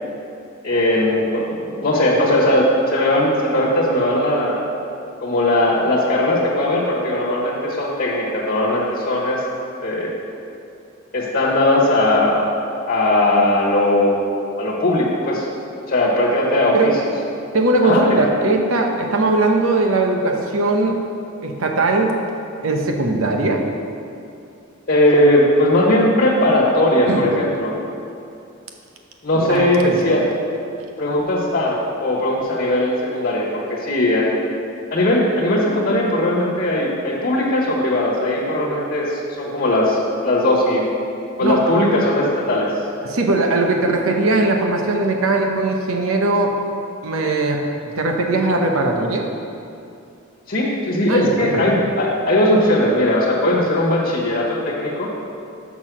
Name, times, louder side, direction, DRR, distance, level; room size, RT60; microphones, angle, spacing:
voice 1, 0.6-4.6 5.2-9.4 9.8-10.1 11.1-12.5 12.9-14.2 14.6-15.4 15.9-17.1 17.8-18.3 24.9-27.7 29.2-30.2 31.0-34.3 34.9-40.8 41.4-42.7 50.5-55.1, left 1 dB, 50° left, -7 dB, 1.3 m, -18 dB
voice 2, 17.5-21.0 21.4-22.1 22.6-23.6 27.1-27.3 29.3-30.2 41.4-41.7 43.0-46.5 47.0-47.6 48.0-49.3 51.1-51.6, right 2 dB, 85° right, 2 dB, 0.9 m, -19 dB
6.1 x 6.0 x 6.1 m, 2.6 s
head